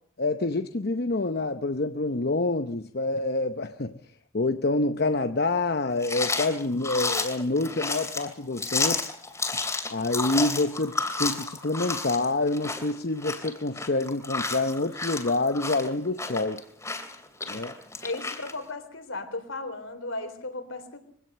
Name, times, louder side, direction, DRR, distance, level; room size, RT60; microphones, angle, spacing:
voice 1, 0.2-4.0 4.3-9.0 9.9-16.6 17.5-17.8, left 2 dB, 50° left, 9 dB, 0.8 m, -27 dB
sound 1, 6.0-18.5, left 3 dB, 15° left, 2.8 m, -31 dB
voice 2, 18.0-21.0, left 2 dB, 70° left, 8 dB, 3.8 m, -35 dB
23.5 x 17.0 x 6.8 m, 0.64 s
head